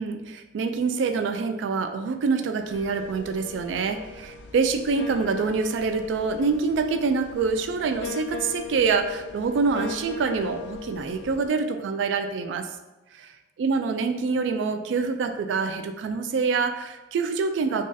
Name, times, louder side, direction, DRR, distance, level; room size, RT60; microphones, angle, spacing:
voice 1, 0.0-12.7 13.1-13.3 13.6-17.9, right 4 dB, 80° right, 7 dB, 0.3 m, -26 dB
sound 1, 2.7-11.5, left 6 dB, 65° left, 0.3 m, -40 dB
2.5 x 2.4 x 3.8 m, 1.1 s
head